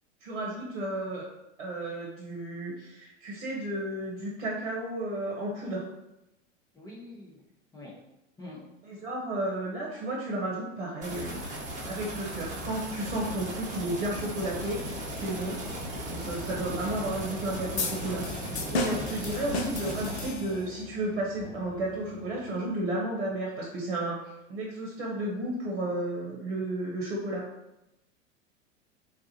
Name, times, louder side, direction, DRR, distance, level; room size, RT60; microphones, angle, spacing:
voice 1, 0.2-1.3 1.6-5.8 8.9-11.3 11.8-14.8 15.1-15.6 16.1-18.2 18.7-24.2 24.5-27.4, right 1 dB, 55° right, -2 dB, 1.0 m, -33 dB
voice 2, 6.7-7.4 7.7-7.9 8.4-8.6, left 2 dB, 10° left, -6 dB, 0.8 m, -45 dB
sound 1, 11.0-20.3, equal, 20° right, 1.1 m, -37 dB
sound 2, 12.1-23.1, left 1 dB, 30° left, 1.4 m, -45 dB
sound 3, 17.8-20.8, left 2 dB, 60° left, 0.7 m, -33 dB
3.8 x 2.4 x 2.8 m, 0.88 s
figure-of-eight pair, 85°, 37 cm